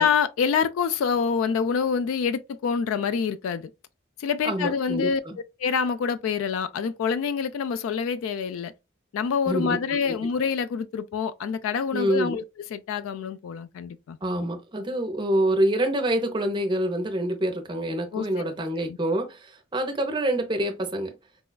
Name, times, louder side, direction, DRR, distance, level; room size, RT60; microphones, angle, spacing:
voice 1, 0.0-3.7 4.2-5.2 5.6-8.7 9.1-12.4 12.7-14.2 18.1-18.4 18.8-19.0, left 6 dB, 85° left, 0.3 m, -26 dB
voice 2, 4.4-5.4 9.5-9.8 10.0-10.1 11.9-12.4 14.2-21.1, right 1 dB, 25° right, 0.6 m, -26 dB
4.1 x 2.3 x 2.2 m
head